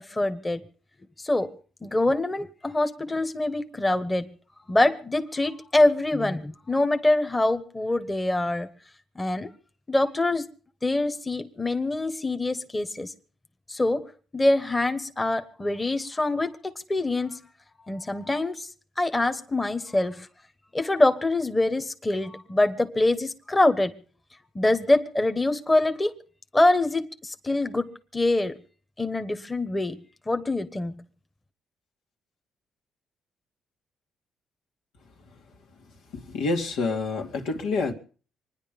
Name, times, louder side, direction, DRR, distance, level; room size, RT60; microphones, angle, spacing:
voice 1, 0.1-0.6 1.2-1.5 1.8-4.3 4.7-8.7 9.2-9.5 9.9-10.5 10.8-13.1 13.7-14.1 14.3-17.4 17.9-18.7 19.0-20.3 20.7-23.9 24.5-26.1 26.5-28.6 29.0-30.0 30.3-30.9, left 2 dB, 20° left, 1.3 m, -24 dB
voice 2, 36.3-37.9, left 3 dB, 90° left, 2.5 m, -27 dB
25.0 x 10.5 x 5.4 m
cardioid pair, 90°, 0 cm